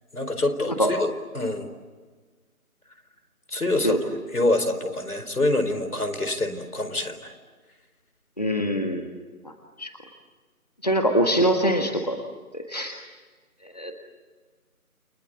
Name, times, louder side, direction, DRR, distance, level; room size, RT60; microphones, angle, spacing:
voice 1, 0.1-1.0 1.3-1.7 3.5-4.0 4.3-7.3, left 2 dB, 80° left, 8 dB, 4.6 m, -25 dB
voice 2, 8.4-9.1 9.8-9.9 10.8-12.2 12.5-13.0 13.6-13.9, equal, 25° left, 4 dB, 1.5 m, -23 dB
29.5 x 24.0 x 8.4 m, 1.4 s
figure-of-eight pair, 180°, 44 cm